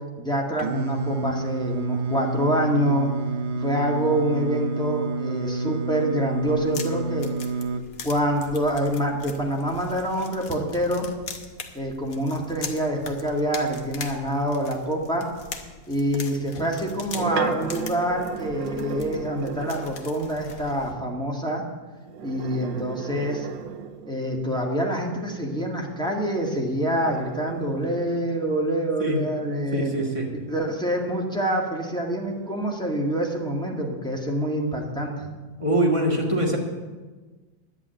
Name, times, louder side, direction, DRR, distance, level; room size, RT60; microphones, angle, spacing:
voice 1, 0.2-3.1 3.6-7.3 8.0-11.1 11.7-15.3 15.9-21.6 22.2-23.5 24.1-29.9 30.5-35.3, right 1 dB, ahead, -1 dB, 1.8 m, -26 dB
Singing, 0.6-7.8, right 3 dB, 60° right, 0.7 m, -29 dB
sound 1, 6.4-20.9, left 5 dB, 55° left, 1.4 m, -41 dB
sound 2, 16.7-20.1 22.0-24.4 26.3-31.5 32.0-33.8, right 7 dB, 80° right, 1.5 m, -36 dB
voice 2, 29.7-30.3 35.6-36.6, right 1 dB, 15° right, -1 dB, 2.2 m, -23 dB
11.0 x 8.2 x 9.1 m, 1.3 s
omnidirectional pair, 2.0 m